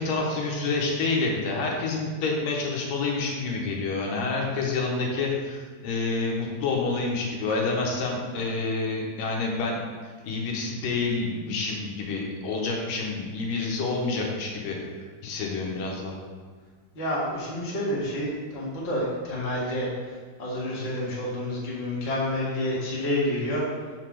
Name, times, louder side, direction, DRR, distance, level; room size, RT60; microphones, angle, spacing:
voice 1, 0.0-14.8 15.2-16.2, left 3 dB, 70° left, -1 dB, 2.6 m, -28 dB
voice 2, 16.9-19.9 20.4-23.6, left 1 dB, 35° left, -6 dB, 1.1 m, -29 dB
6.7 x 4.1 x 6.3 m, 1.5 s
omnidirectional pair, 4.3 m